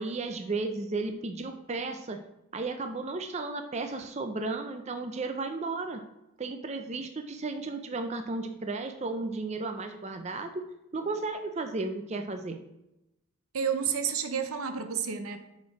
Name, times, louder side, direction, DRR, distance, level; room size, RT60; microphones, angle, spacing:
voice 1, 0.0-2.2 2.5-6.0 6.4-10.7 10.9-12.6, right 3 dB, 30° right, 6 dB, 0.5 m, -34 dB
voice 2, 13.5-15.4, right 7 dB, 85° right, 8 dB, 0.8 m, -30 dB
9.8 x 4.4 x 4.8 m, 0.91 s
head